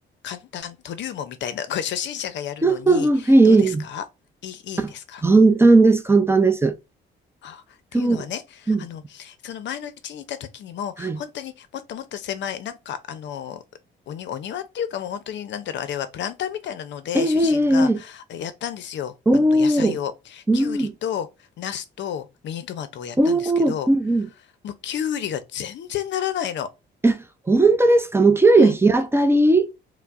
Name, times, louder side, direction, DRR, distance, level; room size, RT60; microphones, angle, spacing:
voice 1, 0.2-4.0 4.4-5.2 7.4-7.6 7.9-13.6 14.1-21.3 21.6-23.9 24.6-26.7 28.6-28.7, left 9 dB, 65° left, 0.5 m, -32 dB
voice 2, 2.6-3.8 4.8-4.9 5.2-6.7 7.9-8.2 8.7-8.8 11.0-11.2 17.1-18.0 19.3-20.0 20.5-20.9 23.2-24.3 27.0-27.2 27.5-29.7, right 2 dB, 10° right, 0.4 m, -17 dB
4.5 x 2.0 x 2.4 m
cardioid pair, 90°, 20 cm